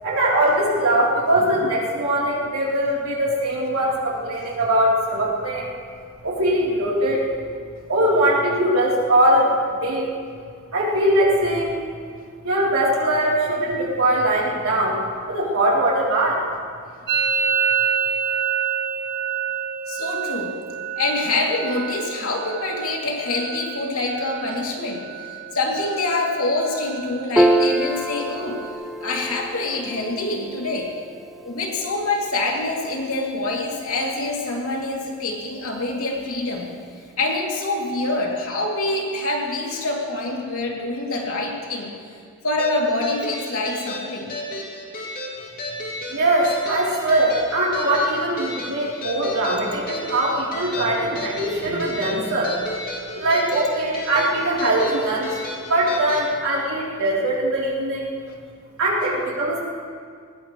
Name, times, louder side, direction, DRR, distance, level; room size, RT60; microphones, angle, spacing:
voice 1, 0.0-5.7 6.2-7.2 7.9-10.1 10.7-11.8 12.4-16.4 46.1-52.6 53.1-55.3 55.7-58.1 58.8-59.6, right 1 dB, 75° right, -5 dB, 3.7 m, -21 dB
Musical instrument, 17.1-24.7 25.0-25.6 25.8-26.4 26.7-28.7, right 7 dB, 50° right, 2.0 m, -28 dB
voice 2, 19.9-20.6 21.0-28.6 29.0-30.9 31.4-36.7 37.2-41.9 42.4-44.3, left 2 dB, 75° left, -2 dB, 3.0 m, -25 dB
Piano, 27.4-34.0, right 1 dB, ahead, 0.6 m, -26 dB
sound 1, 42.6-56.3, left 1 dB, 40° left, 2.7 m, -33 dB
20.5 x 20.0 x 3.3 m, 2.1 s
head